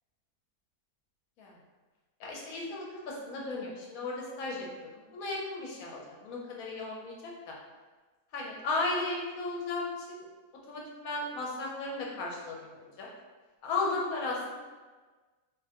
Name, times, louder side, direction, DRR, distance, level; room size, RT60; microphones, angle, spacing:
voice 1, 2.2-4.7 4.9-7.5 8.3-10.3 10.7-13.1 13.6-14.5, left 3 dB, 75° left, -2 dB, 1.1 m, -35 dB
3.6 x 2.1 x 2.8 m, 1.3 s
omnidirectional pair, 1.6 m